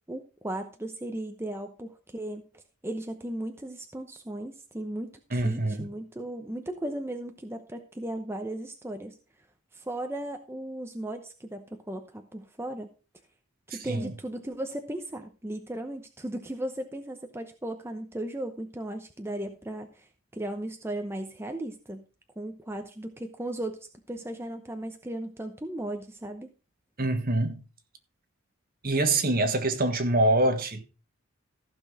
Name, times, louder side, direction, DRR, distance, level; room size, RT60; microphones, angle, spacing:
voice 1, 0.1-9.2 9.7-12.9 13.7-22.0 22.4-23.8 24.1-26.5, right 1 dB, 10° right, 0.8 m, -36 dB
voice 2, 5.3-5.9 13.7-14.1 27.0-27.6 28.8-30.9, right 2 dB, 45° right, 1.6 m, -25 dB
14.5 x 6.2 x 4.9 m
head